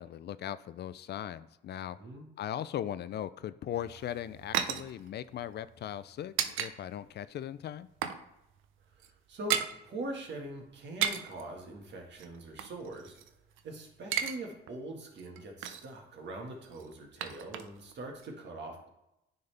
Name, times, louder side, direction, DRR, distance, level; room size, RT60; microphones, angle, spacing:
voice 1, 0.0-2.0 2.4-7.9, left 10 dB, 60° left, 15 dB, 0.4 m, -39 dB
sound 1, 3.7-6.7 7.0-7.2 7.5-8.2 8.5-8.6 8.9-9.8 10.8-11.4 12.1-13.6 13.9-14.4 14.7-14.8 15.2-16.0 16.6-17.9 18.2-18.3, right 9 dB, 90° right, 0.5 m, -35 dB
voice 2, 9.0-13.2 13.6-18.9, right 1 dB, 65° right, 1 dB, 1.7 m, -42 dB
9.4 x 4.0 x 3.4 m, 0.88 s
cardioid pair, 90°, 20 cm